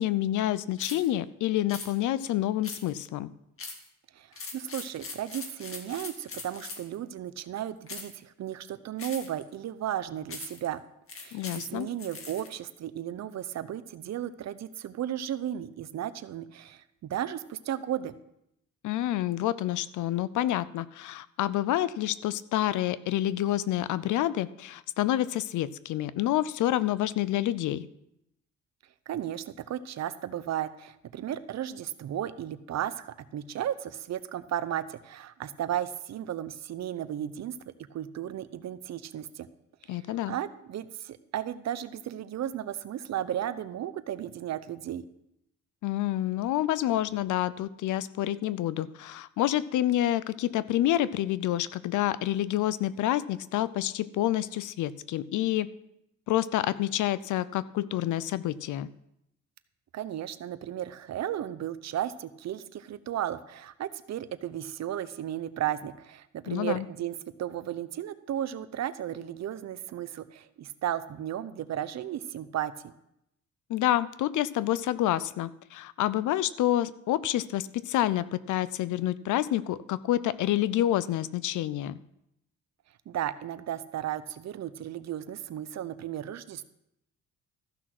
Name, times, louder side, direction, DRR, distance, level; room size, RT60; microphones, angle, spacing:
voice 1, 0.0-3.3 11.3-11.9 18.8-27.9 39.9-40.4 45.8-55.7 56.3-58.9 66.5-66.9 73.7-82.0, left 13 dB, 75° left, 17 dB, 0.6 m, -28 dB
sound 1, 0.8-1.1 1.7-1.9 2.6-3.1 3.6-3.9 4.3-6.9 7.9-8.2 9.0-9.4 10.3-10.7 11.1-12.5, left 4 dB, 45° left, 2.1 m, -41 dB
voice 2, 4.1-10.8 11.2-18.1 29.1-37.6 37.9-39.5 39.8-40.0 40.3-45.0 59.9-72.9 83.1-86.6, right 11 dB, 60° right, 14 dB, 0.8 m, -34 dB
14.0 x 6.2 x 6.0 m, 0.80 s
cardioid pair, 90°, 30 cm